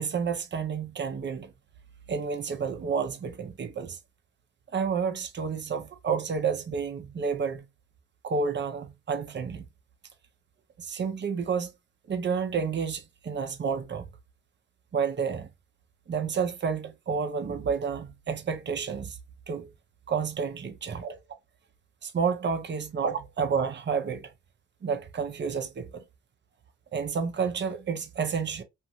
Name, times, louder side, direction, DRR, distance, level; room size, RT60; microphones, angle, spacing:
voice 1, 0.0-1.5 2.1-4.0 4.7-7.7 8.2-9.7 10.8-11.7 12.1-14.1 14.9-15.5 16.1-19.2 19.5-19.7 20.1-21.2 22.0-24.3 24.8-26.0 26.9-28.6, right 6 dB, 35° right, 0.8 m, -30 dB
2.6 x 2.6 x 2.9 m
cardioid pair, 90°, 30 cm